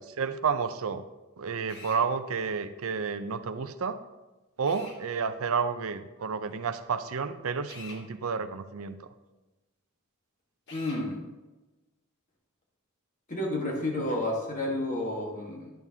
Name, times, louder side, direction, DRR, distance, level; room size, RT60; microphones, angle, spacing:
voice 1, 0.1-1.0 1.4-4.0 4.6-9.0, right 5 dB, 70° right, 10 dB, 0.5 m, -31 dB
Drill, 1.7-2.0 4.6-5.0 7.7-8.0 10.7-11.0, left 3 dB, 50° left, 1.5 m, -46 dB
voice 2, 10.7-11.2 13.3-15.7, left 1 dB, 35° left, -2 dB, 1.4 m, -31 dB
10.5 x 7.0 x 2.8 m, 1.1 s
head